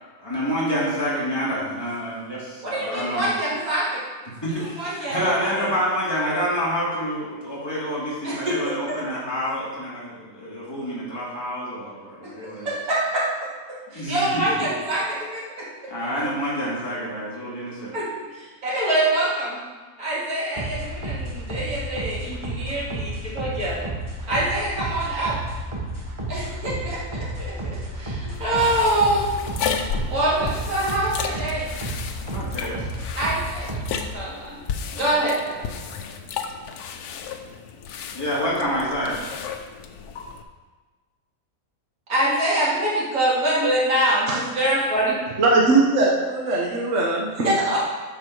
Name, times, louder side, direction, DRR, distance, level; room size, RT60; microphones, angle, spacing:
voice 1, 0.2-3.3 4.4-12.7 13.9-14.3 15.9-17.9 32.3-32.9 38.2-39.2, equal, 15° left, -8 dB, 2.4 m, -27 dB
voice 2, 2.6-3.8 4.8-5.1 5.5-5.7 8.5-8.6 12.9-13.2 14.1-15.0 17.9-18.0 18.6-19.5 20.0-20.6 21.5-22.2 22.6-22.8 23.4-23.7 24.3-25.3 26.3-26.7 28.4-29.2 30.1-31.6 33.2-33.3 34.1-34.2 35.0-35.3 42.1-44.2 44.6-45.1 47.4-47.8, right 1 dB, 70° right, -7 dB, 2.9 m, -23 dB
sound 1, 20.6-34.1, right 1 dB, 20° right, 1.3 m, -32 dB
sound 2, 28.3-40.4, left 6 dB, 85° left, 1.2 m, -33 dB
voice 3, 45.4-47.5, right 2 dB, 55° right, -2 dB, 1.3 m, -20 dB
11.5 x 4.8 x 4.7 m, 1.4 s
omnidirectional pair, 1.6 m